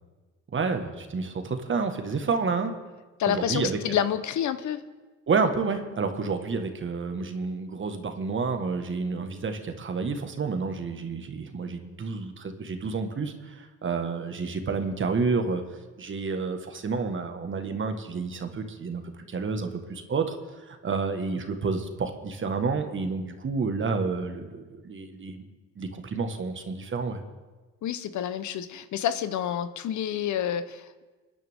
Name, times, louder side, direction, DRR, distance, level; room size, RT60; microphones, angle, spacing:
voice 1, 0.5-2.7 3.3-3.8 5.3-15.6 16.0-20.4 20.7-25.4 25.8-27.2, right 4 dB, 40° right, 6 dB, 1.5 m, -29 dB
voice 2, 3.2-4.8 27.8-31.0, left 9 dB, 75° left, 12 dB, 0.9 m, -28 dB
28.5 x 10.5 x 3.6 m, 1.3 s
cardioid pair, 90°, 30 cm